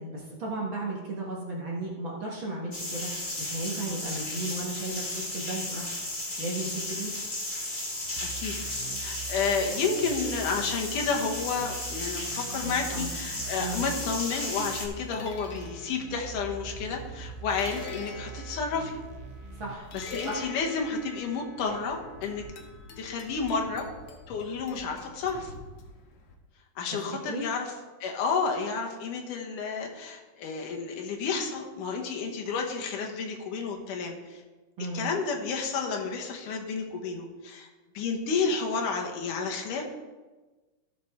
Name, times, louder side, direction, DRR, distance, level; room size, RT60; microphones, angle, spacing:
voice 1, 0.0-5.8 6.4-7.1 12.6-13.1 13.6-13.9 19.6-19.9 20.3-20.5 26.9-27.0 27.3-27.5 34.8-35.1, right 2 dB, 50° right, -3 dB, 1.7 m, -35 dB
sound 1, 2.7-14.8, left 1 dB, 25° left, 1.2 m, -35 dB
voice 2, 8.2-8.6 9.0-19.0 19.9-22.4 23.0-23.9 24.3-25.5 26.8-27.7 28.0-34.4 34.9-37.7 37.9-39.8, left 5 dB, 80° left, 1 dB, 2.8 m, -31 dB
sound 2, 8.2-19.7, right 6 dB, 80° right, 1.9 m, -43 dB
sound 3, 14.2-26.3, left 3 dB, 55° left, 1.8 m, -46 dB
16.0 x 6.6 x 3.6 m, 1.2 s
omnidirectional pair, 3.6 m